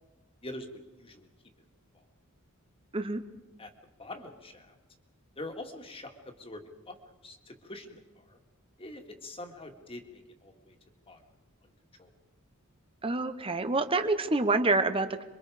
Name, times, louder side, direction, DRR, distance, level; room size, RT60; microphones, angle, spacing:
voice 1, 0.4-1.3 1.9-2.0 3.6-3.7 4.0-4.8 5.4-7.0 7.2-8.4 8.8-10.8 11.1-11.2 11.6-11.7 12.0-12.1, left 1 dB, 25° left, 5 dB, 2.3 m, -44 dB
voice 2, 13.0-15.2, right 3 dB, 25° right, 9 dB, 1.2 m, -27 dB
27.5 x 24.0 x 5.2 m, 1.2 s
head